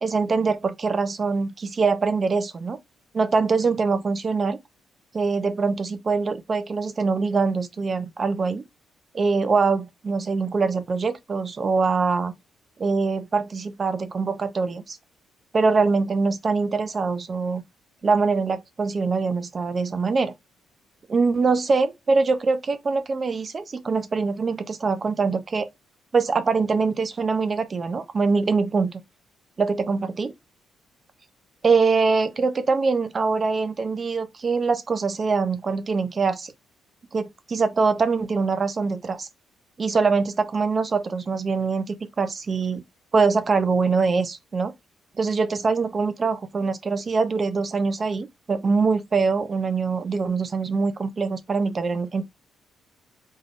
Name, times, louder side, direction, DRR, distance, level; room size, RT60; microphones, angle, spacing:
voice 1, 0.0-2.8 3.1-4.6 5.1-8.6 9.1-12.3 12.8-15.0 15.5-17.6 18.0-20.3 21.1-25.7 26.1-29.0 29.6-30.3 31.6-36.5 37.1-39.3 39.8-42.8 43.1-44.7 45.2-52.2, right 4 dB, 35° right, 0.6 m, -23 dB
3.6 x 3.3 x 2.5 m
cardioid pair, 90°, 0 cm